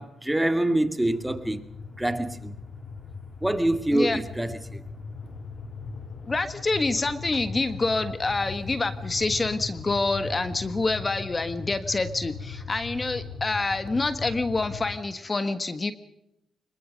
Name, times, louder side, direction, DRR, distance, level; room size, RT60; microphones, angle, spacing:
voice 1, 0.0-1.6 2.0-2.5 3.4-4.8, right 1 dB, 10° right, 2.1 m, -25 dB
sound 1, 1.0-15.0, left 4 dB, 70° left, 2.0 m, -39 dB
voice 2, 6.3-15.9, left 3 dB, 30° left, 1.5 m, -27 dB
25.5 x 22.5 x 5.2 m
cardioid pair, 75°, 0 cm